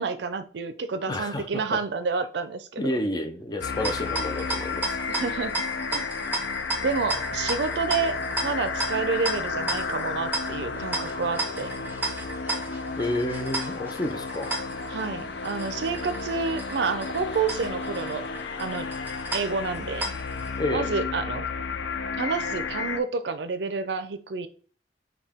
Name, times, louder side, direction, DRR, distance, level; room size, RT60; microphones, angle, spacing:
voice 1, 0.0-2.8 5.1-5.6 5.9-6.1 6.8-11.7 14.9-18.3 18.6-18.9 19.3-20.1 20.7-21.5 22.2-24.5, right 4 dB, 75° right, 0.5 m, -29 dB
voice 2, 1.1-1.8 2.8-5.0 13.0-14.5 20.6-20.9, left 1 dB, 25° left, 0.5 m, -30 dB
sound 1, 3.6-23.0, left 4 dB, 80° left, 0.5 m, -32 dB
sound 2, 3.6-20.5, right 2 dB, 10° right, 0.7 m, -34 dB
5.5 x 2.3 x 3.5 m
head